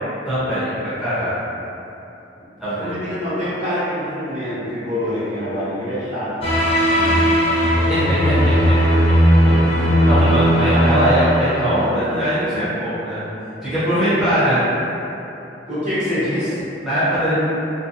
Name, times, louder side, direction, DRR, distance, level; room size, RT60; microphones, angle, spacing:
voice 1, 0.3-1.3 2.6-2.9 7.9-8.7 9.4-13.3 13.6-14.6 16.8-17.4, equal, 5° right, -16 dB, 0.7 m, -21 dB
voice 2, 2.8-7.5 9.4-10.3 15.7-16.6, equal, 40° right, -13 dB, 1.0 m, -26 dB
sound 1, 6.4-12.2, equal, 30° left, 0.6 m, -17 dB
2.7 x 2.1 x 2.5 m, 2.9 s
head